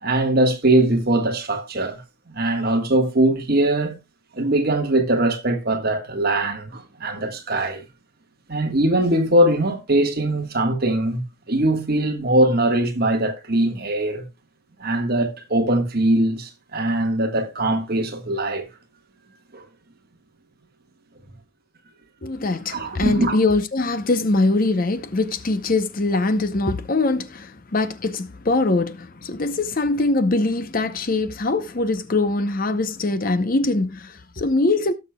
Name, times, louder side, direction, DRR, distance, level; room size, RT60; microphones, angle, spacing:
voice 1, 0.0-2.0 2.3-4.0 4.3-7.8 8.5-11.2 11.5-14.2 14.8-18.6 19.5-19.6 22.7-23.4, right 1 dB, 45° right, 1.5 m, -21 dB
voice 2, 22.2-34.9, left 2 dB, 40° left, 0.7 m, -22 dB
17.5 x 6.5 x 2.2 m
head